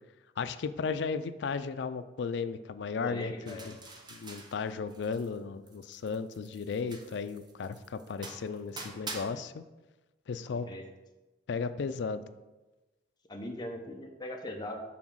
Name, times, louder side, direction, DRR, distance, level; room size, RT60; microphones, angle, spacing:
voice 1, 0.4-3.7 4.1-9.6 10.3-10.7 11.5-12.2, left 5 dB, 65° left, 11 dB, 0.4 m, -35 dB
voice 2, 3.0-3.7 10.5-10.9 13.3-14.8, left 1 dB, 25° left, 2 dB, 0.6 m, -40 dB
sound 1, 3.5-5.4 5.7-9.2, right 3 dB, 25° right, 0.7 m, -46 dB
6.0 x 3.9 x 6.2 m, 1.1 s
head